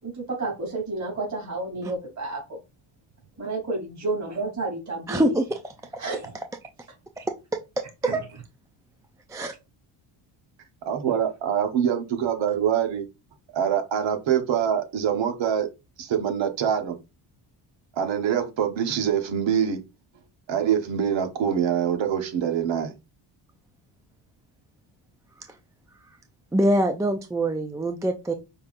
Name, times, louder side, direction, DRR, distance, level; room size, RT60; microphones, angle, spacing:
voice 1, 0.0-2.6 3.4-5.4 6.0-6.3 8.0-8.2, right 2 dB, 35° right, 3.1 m, -31 dB
voice 2, 5.1-5.4 5.9-6.0 7.2-7.3 7.5-7.8 8.1-8.2 9.3-9.5 26.5-28.3, right 1 dB, 10° right, 0.3 m, -24 dB
voice 3, 10.8-13.1 13.5-15.7 16.0-17.0 18.0-19.8 20.5-22.9, right 8 dB, 65° right, 1.3 m, -24 dB
5.5 x 3.7 x 2.5 m
cardioid pair, 120°, 48 cm